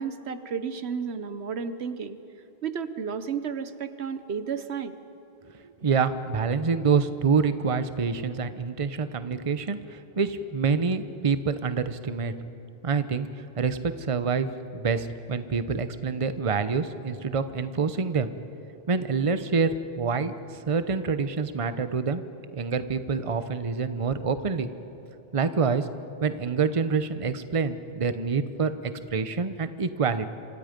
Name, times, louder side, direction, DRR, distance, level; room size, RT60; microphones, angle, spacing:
voice 1, 0.0-2.2 2.6-4.9, right 6 dB, 85° right, 11 dB, 1.2 m, -32 dB
voice 2, 5.8-12.3 12.8-13.3 13.6-18.3 18.9-20.3 20.7-22.2 22.5-24.7 25.3-25.9 26.2-30.3, right 5 dB, 35° right, 11 dB, 0.9 m, -26 dB
27.0 x 25.5 x 5.2 m, 2.9 s
omnidirectional pair, 1.1 m